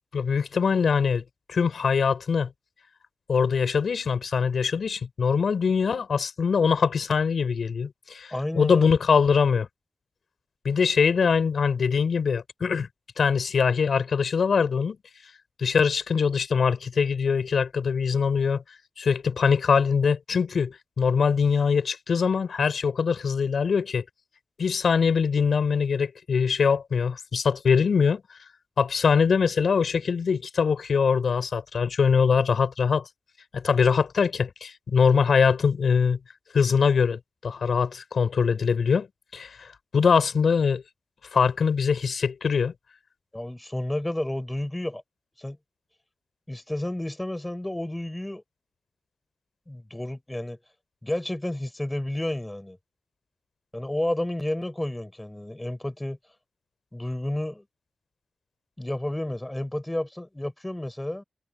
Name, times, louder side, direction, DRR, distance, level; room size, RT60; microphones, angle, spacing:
voice 1, 0.1-1.2 1.5-2.5 3.3-9.7 10.6-12.9 13.2-15.0 15.6-18.6 19.0-24.0 24.6-28.2 28.8-33.0 33.5-36.2 36.5-39.1 39.3-39.7 39.9-40.8 41.3-42.7, left 6 dB, 85° left, 6.6 m, -23 dB
voice 2, 8.3-8.9 43.3-45.0 45.4-45.6 46.5-48.4 49.7-50.6 51.0-52.8 53.7-56.2 56.9-57.6 58.8-61.2, left 1 dB, 15° left, 7.4 m, -31 dB
wide cardioid pair, 70°, 0 cm